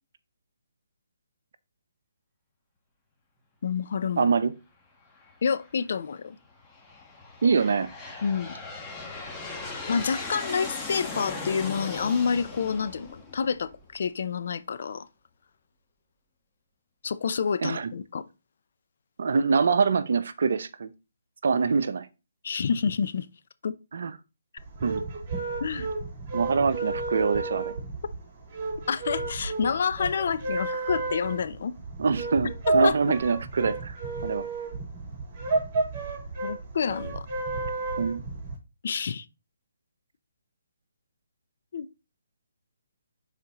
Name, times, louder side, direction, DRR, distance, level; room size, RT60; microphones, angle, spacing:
voice 1, 3.6-4.2 5.4-6.4 8.2-8.5 9.9-15.1 17.0-18.2 22.4-23.3 23.6-23.7 25.6-25.9 28.9-31.7 32.8-33.1 36.4-37.3 38.8-39.2 41.7-41.9, left 6 dB, 60° left, 0.6 m, -28 dB
voice 2, 4.2-4.5 7.4-7.9 17.6-17.9 19.2-20.9 21.4-22.1 23.9-24.1 24.8-25.0 26.3-27.7 32.0-34.5 38.0-38.2, right 5 dB, 65° right, 0.7 m, -24 dB
Aircraft, 5.2-5.7 6.4-14.0, left 3 dB, 15° left, 1.5 m, -38 dB
sound 1, 24.6-38.6, right 3 dB, 30° right, 4.3 m, -31 dB
11.0 x 4.2 x 3.0 m
hypercardioid pair, 145°, 0 cm